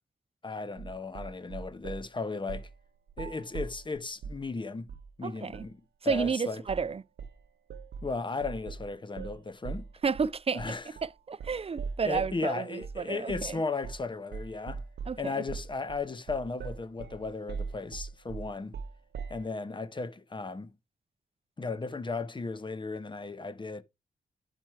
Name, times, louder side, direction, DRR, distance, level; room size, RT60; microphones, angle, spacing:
voice 1, 0.4-2.7 3.2-4.9 5.2-6.6 8.0-9.9 10.5-10.9 12.1-14.8 15.2-18.8 19.3-20.8 21.6-23.8, left 3 dB, 30° left, 0.7 m, -35 dB
sound 1, 0.8-2.1 2.5-2.8 3.1-4.5 4.9-5.1 5.5-5.7 6.1-6.3 6.7-6.9 7.2-12.4 12.8-13.0 13.3-13.6 13.8-14.1 14.3-19.5, right 5 dB, 80° right, 0.6 m, -41 dB
voice 2, 5.2-5.6 6.0-7.0 10.0-10.6 11.3-13.6 15.1-15.3, right 5 dB, 35° right, 0.4 m, -31 dB
9.1 x 4.5 x 4.6 m
wide cardioid pair, 100°, 17 cm